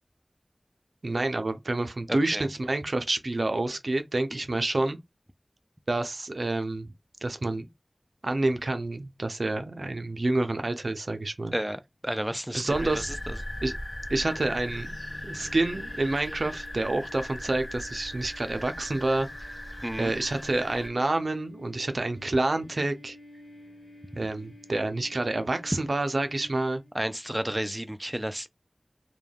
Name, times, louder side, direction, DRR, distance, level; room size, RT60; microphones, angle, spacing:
voice 1, 1.0-5.0 5.9-6.9 7.2-7.7 8.2-11.5 12.5-13.1 13.6-13.7 14.1-15.0 15.2-19.6 20.0-23.2 24.2-26.8, right 2 dB, 90° right, 0.4 m, -28 dB
voice 2, 2.1-2.5 4.3-4.4 11.5-13.4 19.8-20.1 26.9-28.5, equal, 15° right, 0.4 m, -32 dB
sound 1, 12.7-20.9, left 1 dB, 20° left, 1.0 m, -38 dB
sound 2, 13.0-26.9, left 2 dB, 75° left, 0.5 m, -51 dB
2.2 x 2.1 x 3.2 m
wide cardioid pair, 40°, 0 cm